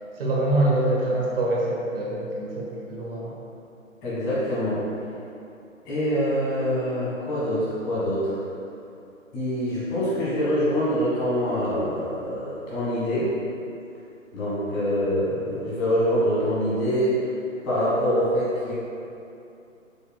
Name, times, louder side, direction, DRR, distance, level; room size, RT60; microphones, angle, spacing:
voice 1, 0.1-3.3, right 1 dB, 45° right, -5 dB, 1.3 m, -25 dB
voice 2, 4.0-4.8 5.8-8.4 9.3-13.3 14.3-17.2 17.6-18.7, equal, 15° left, -10 dB, 1.5 m, -25 dB
7.1 x 6.7 x 2.2 m, 2.7 s
figure-of-eight pair, 145°, 41 cm